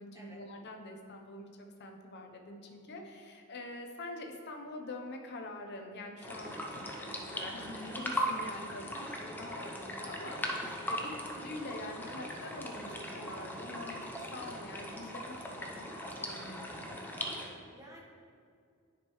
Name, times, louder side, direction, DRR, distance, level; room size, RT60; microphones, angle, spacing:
voice 1, 0.0-8.9 9.2-15.8 16.2-17.1, left 2 dB, 55° left, 3 dB, 0.7 m, -45 dB
sound 1, 6.2-17.5, equal, 10° left, 0.7 m, -39 dB
voice 2, 8.8-9.2 10.9-11.2 15.7-15.9 17.7-18.0, right 1 dB, 15° right, -3 dB, 1.2 m, -54 dB
9.8 x 5.1 x 3.1 m, 2.3 s
head